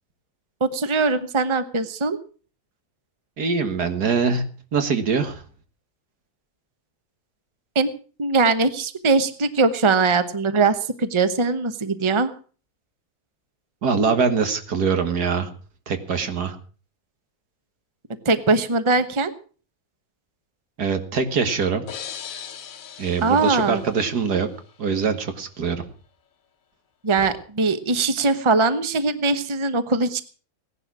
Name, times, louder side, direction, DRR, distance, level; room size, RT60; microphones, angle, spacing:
voice 1, 0.6-2.2 7.7-7.9 8.2-12.3 18.2-19.3 23.2-23.8 27.0-30.2, right 3 dB, 20° right, 11 dB, 1.0 m, -21 dB
voice 2, 3.4-4.4 4.7-5.4 13.8-15.5 15.9-16.6 20.8-21.8 23.0-24.5 24.8-25.8, right 5 dB, 85° right, 8 dB, 2.3 m, -23 dB
sound 1, 21.9-24.6, left 8 dB, 60° left, 1.5 m, -39 dB
17.5 x 11.0 x 6.1 m, 0.40 s
omnidirectional pair, 1.7 m